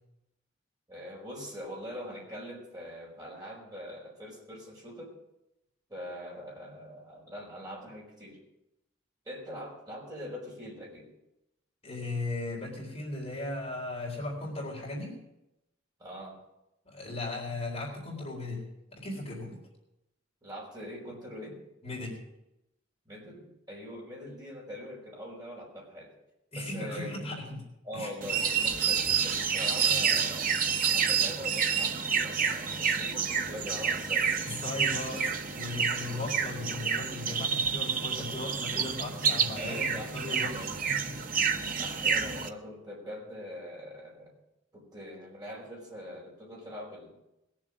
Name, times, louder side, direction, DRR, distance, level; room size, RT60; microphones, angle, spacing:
voice 1, 0.9-5.1 5.9-8.4 9.2-11.1 16.0-16.4 20.4-21.6 23.0-26.1 26.5-27.4 27.8-30.5 30.9-34.3 39.5-40.7 41.8-44.3 44.7-47.1, equal, 20° right, -3 dB, 4.8 m, -43 dB
voice 2, 11.8-15.2 16.9-18.6 18.9-19.6 21.8-22.2 26.5-27.6 27.9-28.1 34.4-41.2, left 2 dB, 30° left, -3 dB, 3.9 m, -37 dB
sound 1, 28.2-42.5, right 6 dB, 45° right, 0.9 m, -29 dB
21.0 x 7.5 x 6.2 m, 0.89 s
head